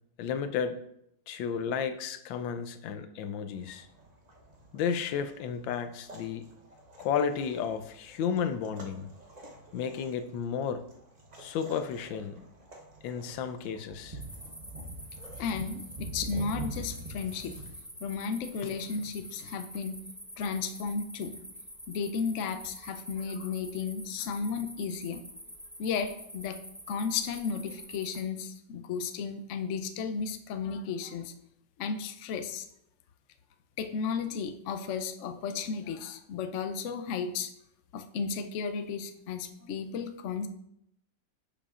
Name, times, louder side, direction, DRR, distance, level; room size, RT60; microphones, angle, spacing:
voice 1, 0.2-0.8 1.3-3.9 4.7-6.5 7.0-9.1 9.7-10.8 11.4-12.4 13.0-14.2, left 7 dB, 85° left, 9 dB, 1.4 m, -32 dB
sound 1, 3.5-17.7, right 2 dB, 30° right, 0.9 m, -46 dB
sound 2, 14.2-28.2, equal, ahead, 0.4 m, -47 dB
voice 2, 15.4-17.6 18.0-20.0 20.4-21.4 21.9-25.2 25.8-26.6 26.9-31.3 31.8-32.6 33.8-37.5 37.9-40.5, left 6 dB, 65° left, 8 dB, 0.7 m, -34 dB
10.0 x 7.0 x 2.5 m, 0.77 s
omnidirectional pair, 2.0 m